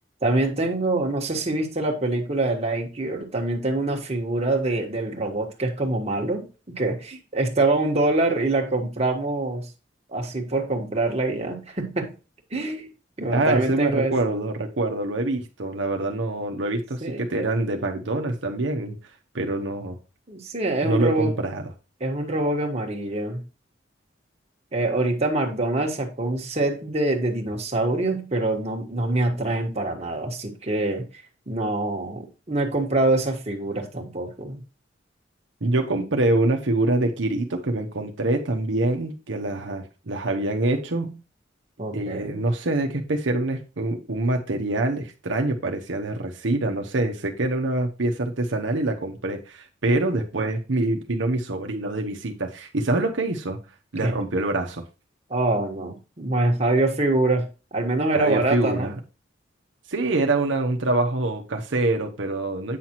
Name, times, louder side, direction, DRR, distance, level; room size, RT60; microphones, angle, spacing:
voice 1, 0.2-9.7 10.1-12.1 12.5-12.9 13.2-14.2 17.0-17.4 20.3-21.3 22.0-23.4 24.7-31.1 31.5-34.6 41.8-42.4 54.0-54.2 55.3-58.9, right 2 dB, 35° right, 1.4 m, -25 dB
voice 2, 13.3-19.0 19.3-20.0 20.8-21.7 35.6-41.2 41.9-53.6 53.9-54.8 58.1-58.9 59.9-62.8, right 2 dB, 80° right, 1.0 m, -25 dB
8.5 x 5.8 x 3.0 m
head